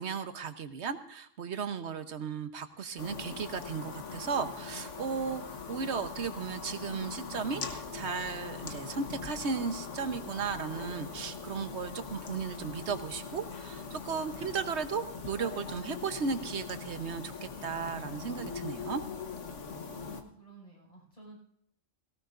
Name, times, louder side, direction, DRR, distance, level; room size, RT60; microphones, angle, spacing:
voice 1, 0.0-5.4 5.7-19.0, right 5 dB, 65° right, 9 dB, 1.3 m, -35 dB
sound 1, 3.0-20.2, left 5 dB, 70° left, 1.5 m, -41 dB
voice 2, 19.8-21.4, right 2 dB, 30° left, -5 dB, 6.1 m, -52 dB
18.0 x 17.5 x 2.6 m, 0.67 s
omnidirectional pair, 1.3 m